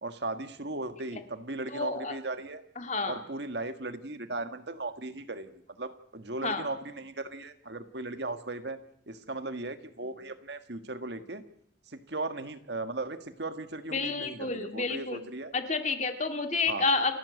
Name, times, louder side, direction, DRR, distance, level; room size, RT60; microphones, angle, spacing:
voice 1, 0.0-2.6 3.0-8.8 9.1-11.4 11.9-15.5 16.7-16.9, right 2 dB, 65° right, 9 dB, 1.6 m, -37 dB
voice 2, 1.7-2.2 2.8-3.2 6.4-6.7 13.9-15.2 15.5-17.2, left 3 dB, 40° left, 6 dB, 2.0 m, -30 dB
29.0 x 12.0 x 8.2 m, 0.69 s
head